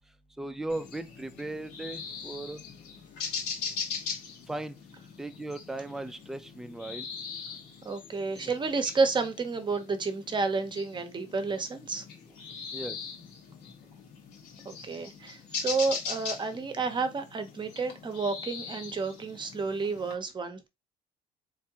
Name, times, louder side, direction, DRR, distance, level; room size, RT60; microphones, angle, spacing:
voice 1, 0.4-2.6 4.5-4.8 5.2-7.1 8.3-8.5 12.7-13.0, right 2 dB, 5° right, 0.4 m, -37 dB
sound 1, 0.7-20.1, left 5 dB, 80° left, 1.6 m, -41 dB
voice 2, 7.8-12.0 14.6-20.7, right 4 dB, 30° right, 0.8 m, -31 dB
3.5 x 3.3 x 2.8 m
cardioid pair, 110°, 17 cm